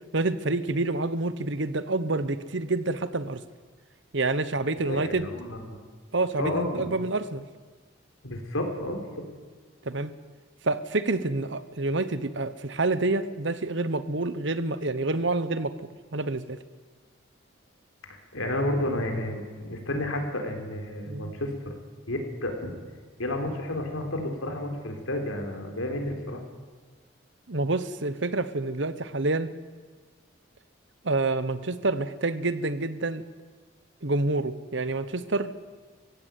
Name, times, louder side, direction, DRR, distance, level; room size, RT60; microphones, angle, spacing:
voice 1, 0.1-3.4 4.1-5.3 6.1-7.4 9.8-10.1 10.6-15.7 16.1-16.6 21.1-21.3 27.5-29.5 31.0-33.2 34.0-35.5, right 2 dB, 65° right, 14 dB, 1.1 m, -28 dB
voice 2, 4.8-5.8 6.4-6.9 8.2-9.2 18.3-21.7 22.1-22.7 23.2-26.4, left 1 dB, 90° left, 4 dB, 4.1 m, -31 dB
22.5 x 16.0 x 9.4 m, 1.4 s
head